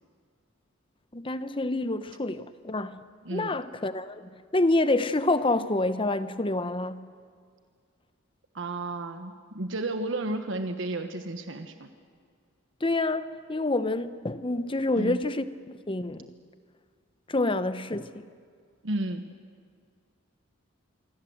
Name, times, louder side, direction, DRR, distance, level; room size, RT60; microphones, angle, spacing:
voice 1, 1.1-3.0 3.3-7.1 12.8-16.3 17.3-18.3, left 2 dB, 25° left, 0.9 m, -28 dB
voice 2, 8.5-11.9 15.0-15.2 18.8-19.2, right 2 dB, 65° right, 1.3 m, -32 dB
27.0 x 24.0 x 7.9 m
head